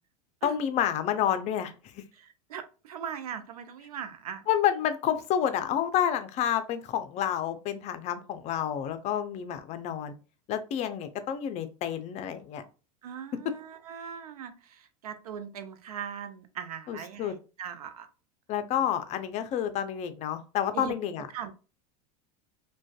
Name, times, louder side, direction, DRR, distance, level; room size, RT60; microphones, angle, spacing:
voice 1, 0.4-2.0 4.5-10.1 10.5-12.6 16.9-17.4 18.5-21.3, left 10 dB, 40° left, 0.4 m, -29 dB
voice 2, 2.1-4.4 13.0-18.1 20.7-20.9 21.3-21.5, right 8 dB, 90° right, 0.5 m, -40 dB
2.5 x 2.2 x 2.3 m
hypercardioid pair, 105°, 19 cm